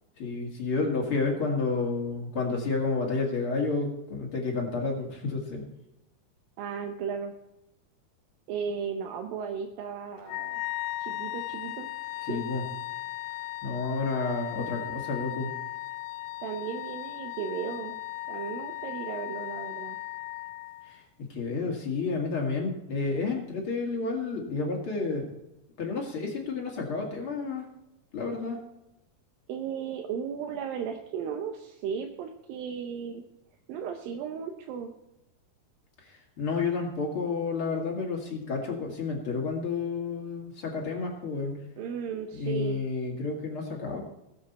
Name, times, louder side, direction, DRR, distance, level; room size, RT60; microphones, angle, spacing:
voice 1, 0.2-5.6 12.3-12.6 13.6-15.5 20.9-25.3 25.8-27.7 28.1-28.6 36.0-41.6 42.3-44.0, left 4 dB, 40° left, 0 dB, 2.5 m, -30 dB
voice 2, 6.6-7.3 8.5-10.6 11.0-11.9 12.1-12.4 16.4-18.0 18.3-20.0 29.5-33.2 33.7-34.9 41.8-42.8, right 7 dB, 75° right, 3 dB, 2.5 m, -35 dB
Wind instrument woodwind instrument, 10.2-21.0, left 18 dB, 85° left, 2.5 m, -37 dB
20.0 x 7.5 x 4.2 m, 0.92 s
omnidirectional pair, 4.4 m